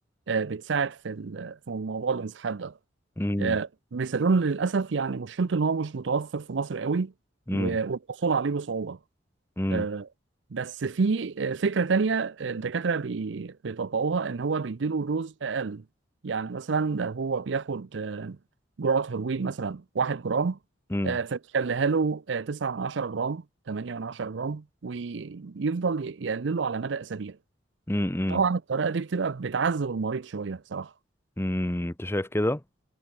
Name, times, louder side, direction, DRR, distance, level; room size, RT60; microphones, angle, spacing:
voice 1, 0.3-2.7 3.4-7.1 7.5-9.0 9.7-10.1 10.5-15.8 16.2-18.4 18.8-20.6 21.0-27.4 28.3-30.9, right 4 dB, 70° right, 0.6 m, -28 dB
voice 2, 3.2-3.6 7.5-7.8 9.6-9.9 20.9-21.2 27.9-28.4 31.4-32.6, left 1 dB, 15° left, 0.9 m, -28 dB
head